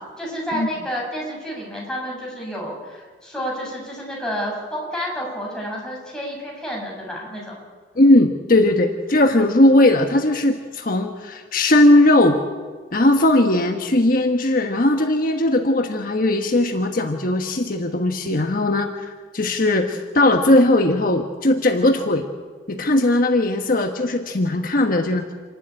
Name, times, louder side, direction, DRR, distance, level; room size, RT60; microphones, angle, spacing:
voice 1, 0.2-7.5, equal, 5° left, -3 dB, 6.6 m, -30 dB
voice 2, 8.0-12.4 12.9-19.1 19.3-22.3 22.7-25.2, left 1 dB, 55° left, 4 dB, 1.3 m, -18 dB
27.0 x 12.0 x 9.9 m, 1.5 s
head